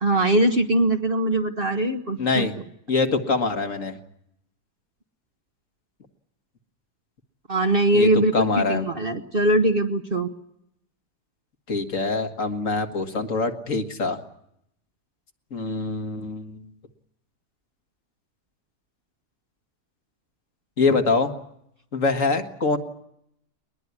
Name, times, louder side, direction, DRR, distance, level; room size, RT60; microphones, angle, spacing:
voice 1, 0.0-2.5 7.5-8.3 8.7-10.3, right 1 dB, 35° right, 5 dB, 1.3 m, -21 dB
voice 2, 2.2-2.6 2.9-4.0 7.9-8.8 11.7-14.2 15.5-16.7 20.8-21.3 21.9-22.8, left 3 dB, 55° left, 6 dB, 2.1 m, -24 dB
21.5 x 21.0 x 9.7 m, 0.76 s
omnidirectional pair, 1.7 m